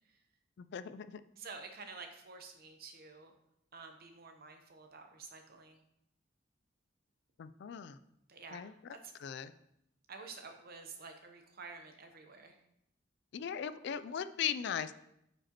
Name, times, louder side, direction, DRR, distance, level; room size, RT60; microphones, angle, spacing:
voice 1, 0.6-1.2 7.4-8.0 8.5-8.9 9.2-9.5 13.3-14.9, left 8 dB, 65° left, 13 dB, 0.4 m, -38 dB
voice 2, 1.4-3.3 3.7-5.8 8.3-9.1 10.1-12.6, right 4 dB, 55° right, 5 dB, 0.9 m, -50 dB
9.0 x 5.0 x 3.0 m, 0.79 s
head